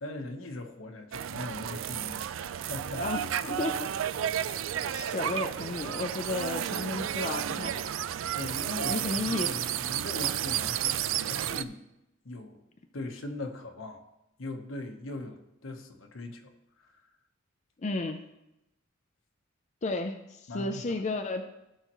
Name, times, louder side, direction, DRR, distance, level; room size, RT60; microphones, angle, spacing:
voice 1, 0.0-3.1 8.3-11.8 12.2-12.6 12.9-14.0 14.4-17.1 20.5-21.0, left 2 dB, 80° left, 4 dB, 1.1 m, -40 dB
sound 1, 1.1-11.6, right 10 dB, 75° right, 0.4 m, -32 dB
voice 2, 3.0-3.9 4.9-7.7 8.9-9.5 17.8-18.2 19.8-21.5, left 2 dB, 35° left, 5 dB, 0.5 m, -33 dB
16.0 x 5.7 x 3.0 m, 0.90 s
head